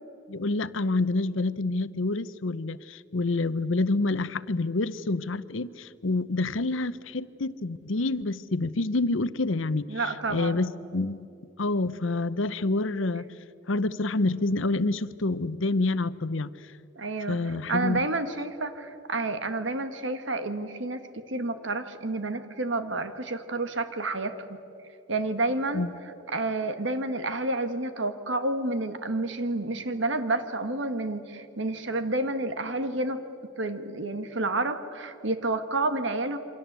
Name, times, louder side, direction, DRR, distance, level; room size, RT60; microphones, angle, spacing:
voice 1, 0.3-11.3 11.6-13.3 13.7-16.5 17.3-18.1 25.7-25.9, left 2 dB, 75° left, 15 dB, 0.8 m, -28 dB
voice 2, 9.9-10.6 17.0-17.4 17.7-24.3 25.1-25.9 26.3-33.2 33.6-36.4, right 2 dB, 70° right, 9 dB, 1.8 m, -29 dB
28.0 x 25.0 x 8.2 m, 2.8 s
head